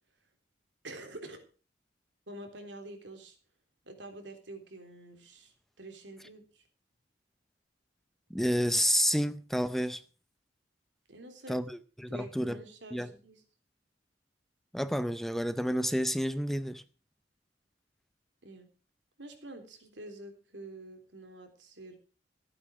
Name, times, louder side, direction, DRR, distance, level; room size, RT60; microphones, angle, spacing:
voice 1, 0.8-1.4 2.3-3.4 3.8-6.7 11.1-11.6 12.1-13.4 18.4-18.7 19.2-22.0, right 1 dB, 85° right, 3.5 m, -47 dB
voice 2, 8.3-10.0 11.5-12.6 12.9-13.1 14.7-16.8, equal, ahead, 0.6 m, -30 dB
15.0 x 8.7 x 6.2 m
head